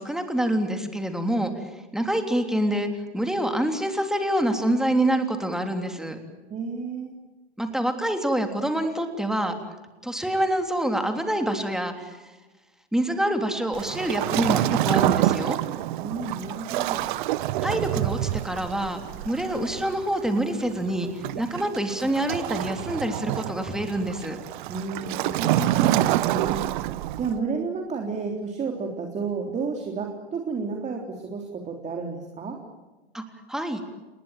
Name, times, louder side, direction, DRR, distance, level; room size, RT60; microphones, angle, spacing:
voice 1, 0.0-2.9 3.1-6.2 7.6-9.5 10.0-12.2 12.9-15.6 17.6-24.4 33.1-33.2 33.5-33.8, right 1 dB, ahead, 6 dB, 3.3 m, -26 dB
voice 2, 6.5-7.1 16.0-17.1 24.7-26.7 27.2-32.6, right 4 dB, 20° right, 3 dB, 3.6 m, -31 dB
Waves surf, 13.7-27.4, right 15 dB, 50° right, 1.2 m, -27 dB
29.5 x 21.0 x 7.6 m, 1.2 s
figure-of-eight pair, 100°, 32 cm